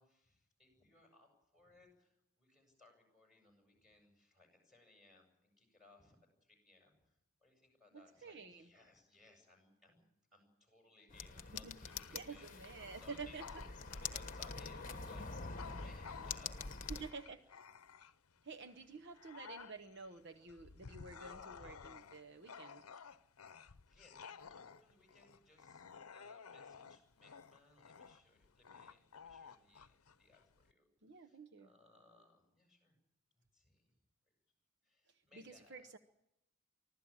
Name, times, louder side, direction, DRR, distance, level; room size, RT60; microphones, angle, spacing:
voice 1, 0.0-10.0 10.3-13.4 13.9-15.5 15.7-17.1 20.3-20.5 23.6-30.9 31.1-33.0 33.3-33.9 34.8-35.9, left 3 dB, ahead, 1 dB, 7.8 m, -66 dB
voice 2, 7.9-8.7 11.5-11.8 12.1-13.5 16.9-17.4 18.4-22.8 31.0-31.7 35.1-36.0, right 4 dB, 55° right, 6 dB, 0.9 m, -50 dB
sound 1, 11.1-17.1, left 5 dB, 35° left, 1.2 m, -46 dB
Bark / Growling, 11.8-18.4 18.8-30.7, left 6 dB, 80° left, 0.7 m, -55 dB
24.5 x 15.5 x 8.8 m, 0.83 s
head